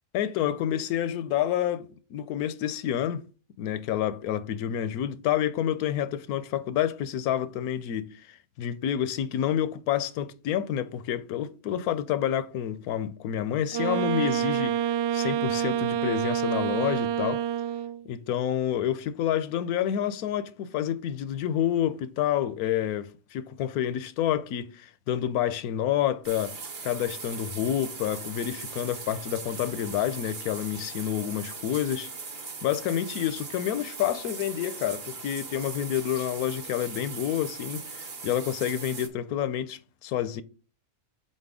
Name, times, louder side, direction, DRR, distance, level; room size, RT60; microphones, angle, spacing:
voice 1, 0.1-3.2 3.6-17.4 18.1-26.6 26.8-32.1 32.6-40.4, left 10 dB, 75° left, 1.0 m, -29 dB
Wind instrument woodwind instrument, 13.7-18.1, right 10 dB, 80° right, 0.5 m, -27 dB
sound 1, 26.2-39.1, right 4 dB, 45° right, 1.2 m, -39 dB
6.5 x 4.4 x 3.6 m
omnidirectional pair, 1.6 m